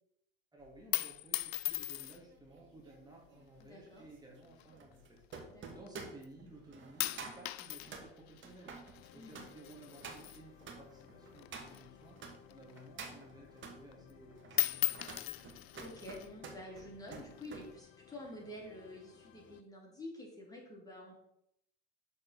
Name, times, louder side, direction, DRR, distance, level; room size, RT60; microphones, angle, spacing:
voice 1, 0.5-15.1, right 2 dB, 15° right, -2 dB, 2.4 m, -56 dB
sound 1, 0.7-2.4 3.2-3.7 4.5-5.9 6.2-6.6 7.0-11.1 11.3-13.0 13.4-13.5 13.8-14.2 14.5-16.3 17.1-17.7, left 15 dB, 85° left, 0.5 m, -39 dB
sound 2, 1.7-12.3 12.7-13.8 14.3-17.7 18.0-18.3, right 4 dB, 40° right, 1.8 m, -50 dB
voice 2, 3.6-4.1 5.5-5.7 9.1-9.5 15.8-21.1, left 1 dB, 10° left, -2 dB, 2.5 m, -49 dB
sound 3, 8.9-19.6, left 9 dB, 40° left, 0.6 m, -60 dB
6.9 x 4.3 x 5.5 m, 0.77 s
hypercardioid pair, 80°, 30 cm